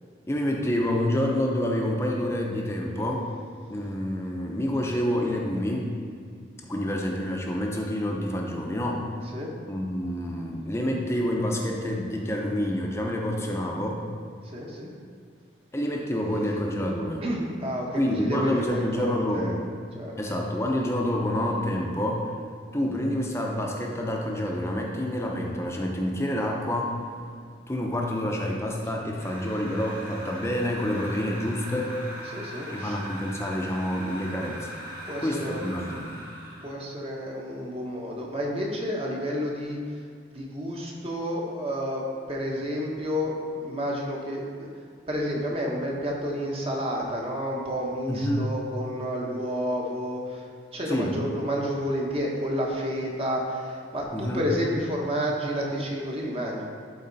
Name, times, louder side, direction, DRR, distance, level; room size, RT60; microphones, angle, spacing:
voice 1, 0.3-3.3 3.7-6.0 6.6-9.0 9.7-14.0 15.7-17.2 17.9-19.6 20.2-22.3 22.7-27.0 27.7-32.0 32.7-36.1 48.1-48.4 50.9-51.2 54.1-54.4, left 1 dB, 15° left, 0 dB, 0.7 m, -28 dB
voice 2, 14.4-14.9 16.3-16.5 17.2-19.6 19.9-20.4 28.9-29.2 32.2-33.0 35.1-35.9 36.6-40.0 40.3-42.0 42.3-44.7 45.1-56.6, equal, 30° right, -2 dB, 1.2 m, -30 dB
sound 1, 29.1-36.8, equal, 50° right, 2.1 m, -40 dB
12.0 x 4.2 x 4.1 m, 2.2 s
head